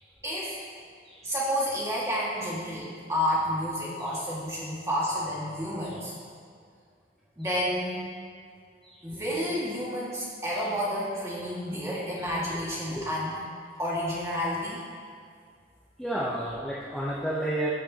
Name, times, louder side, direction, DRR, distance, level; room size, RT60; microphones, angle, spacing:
voice 1, 0.2-0.6 1.2-6.1 7.4-8.0 9.0-13.4 13.8-14.8, equal, 15° right, -7 dB, 1.8 m, -30 dB
voice 2, 12.3-13.1 16.0-17.7, right 1 dB, 5° left, -7 dB, 0.7 m, -33 dB
15.0 x 5.1 x 2.8 m, 2.1 s
head